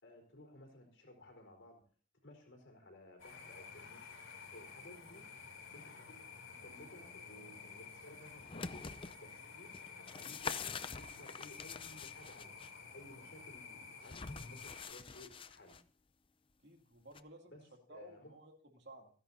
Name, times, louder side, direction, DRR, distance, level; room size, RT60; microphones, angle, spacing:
voice 1, 0.0-1.8 2.2-5.3 5.7-9.7 10.0-12.5 12.9-15.8 17.5-18.4, left 1 dB, 65° left, 3 dB, 4.4 m, -57 dB
sound 1, 3.2-14.8, left 5 dB, 80° left, 3.1 m, -52 dB
sound 2, 8.3-9.2 9.7-12.7 14.0-15.8 17.1-17.2, left 5 dB, 25° left, 0.5 m, -45 dB
voice 2, 16.6-17.5 17.9-19.1, right 2 dB, 55° right, 3 dB, 2.7 m, -56 dB
27.0 x 10.5 x 2.8 m, 0.44 s
head